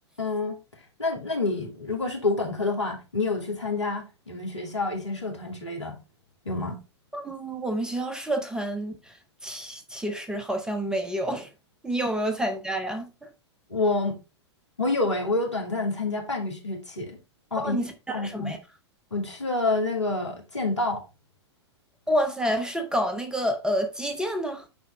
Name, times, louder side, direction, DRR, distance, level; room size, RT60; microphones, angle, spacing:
voice 1, 0.2-0.6 1.0-6.0 6.4-6.8 13.7-14.2 14.8-17.2 17.5-18.5 19.1-21.0, left 3 dB, 85° left, 2.4 m, -28 dB
voice 2, 7.1-9.2 9.4-11.5 11.8-13.3 17.6-18.6 22.1-24.6, equal, 5° right, 0.9 m, -29 dB
9.4 x 3.7 x 3.3 m
figure-of-eight pair, 105°, 15 cm